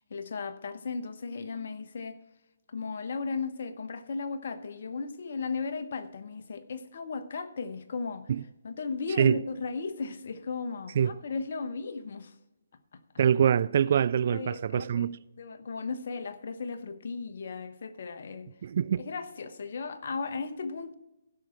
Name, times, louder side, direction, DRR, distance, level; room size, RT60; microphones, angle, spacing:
voice 1, 0.1-2.2 2.7-8.3 8.6-12.3 12.9-13.0 14.3-18.5 19.0-20.9, left 4 dB, 55° left, 1.0 m, -36 dB
voice 2, 13.2-15.2 18.6-19.0, right 8 dB, 50° right, 0.3 m, -24 dB
16.0 x 6.2 x 4.5 m
figure-of-eight pair, 145°, 0 cm